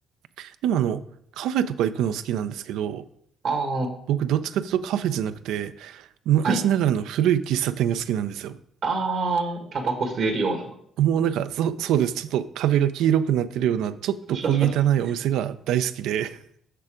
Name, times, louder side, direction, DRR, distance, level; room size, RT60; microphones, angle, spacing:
voice 1, 0.4-1.0 1.4-3.0 4.1-8.6 11.0-16.4, right 10 dB, 90° right, 0.4 m, -24 dB
voice 2, 3.4-3.9 6.4-6.6 8.8-10.7 14.3-14.7, right 3 dB, 70° right, 1.5 m, -26 dB
6.7 x 6.0 x 5.0 m
cardioid pair, 90°, 0 cm